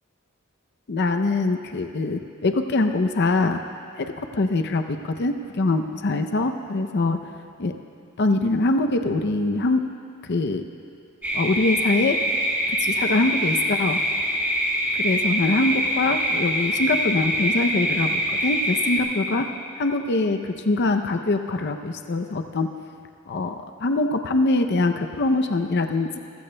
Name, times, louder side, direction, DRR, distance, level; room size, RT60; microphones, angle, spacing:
voice 1, 0.9-3.6 4.0-7.2 7.6-7.7 8.2-9.8 10.2-10.6 11.3-12.2 12.7-14.0 15.0-19.5 19.8-22.7 23.3-26.2, left 2 dB, 55° left, 7 dB, 0.6 m, -23 dB
sound 1, 11.2-19.0, right 1 dB, 10° right, 2.0 m, -24 dB
27.5 x 15.5 x 2.2 m, 2.4 s
head